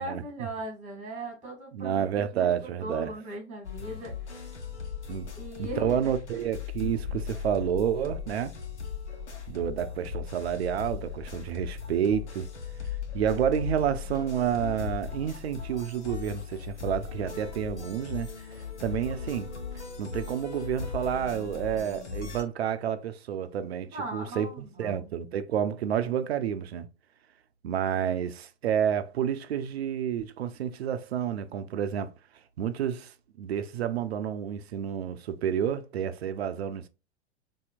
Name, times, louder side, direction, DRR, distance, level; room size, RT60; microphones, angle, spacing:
voice 1, 0.0-2.5 2.8-4.2 5.3-6.0 23.9-25.2, right 1 dB, 20° right, 1.8 m, -39 dB
voice 2, 1.7-3.1 5.1-5.3 5.6-8.5 9.5-12.5 13.1-18.3 18.8-19.5 19.7-26.9 27.6-32.1 32.6-36.9, right 9 dB, 65° right, 0.6 m, -30 dB
sound 1, 3.6-22.4, left 6 dB, 80° left, 0.9 m, -38 dB
4.3 x 2.7 x 2.3 m
figure-of-eight pair, 105°, 34 cm